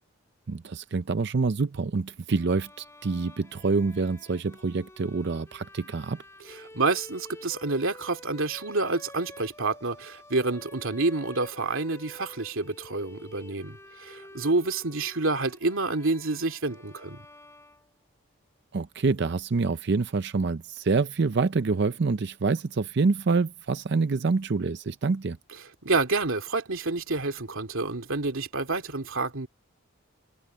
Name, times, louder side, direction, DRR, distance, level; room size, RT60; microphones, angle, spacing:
voice 1, 0.5-6.2 18.7-25.4, right 4 dB, 50° right, 0.5 m, -26 dB
Bowed string instrument, 2.3-18.3, left 1 dB, 15° left, 6.7 m, -49 dB
voice 2, 6.5-17.3 25.8-29.5, right 3 dB, 65° right, 2.5 m, -28 dB
head